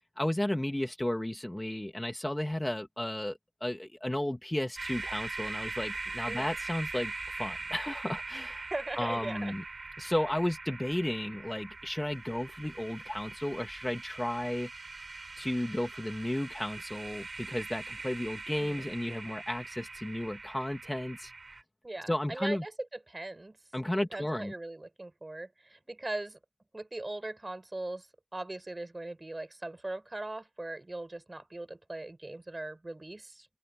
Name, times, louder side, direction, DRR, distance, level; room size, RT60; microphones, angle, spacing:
voice 1, 0.0-8.7 9.0-9.6 10.0-14.7 15.4-21.3 22.1-22.6 23.7-24.5, left 1 dB, 10° left, 1.7 m, -33 dB
sound 1, 4.8-21.6, right 3 dB, 45° right, 2.7 m, -42 dB
voice 2, 8.7-9.5 18.6-18.9 21.8-22.7 23.1-23.6 24.1-26.4 26.7-28.1 28.3-33.5, right 2 dB, 25° right, 4.1 m, -39 dB
open air
wide cardioid pair, 115°, 0 cm